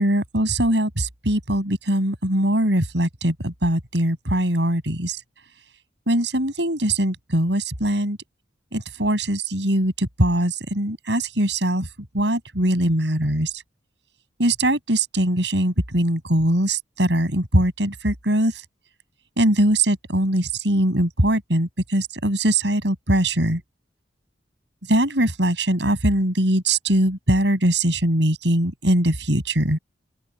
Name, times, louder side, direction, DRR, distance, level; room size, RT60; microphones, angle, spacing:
voice 1, 0.0-5.2 6.1-8.2 8.7-11.9 12.1-13.6 14.4-18.6 19.4-23.6 24.9-29.8, right 1 dB, 75° right, 7.0 m, -21 dB
open air
head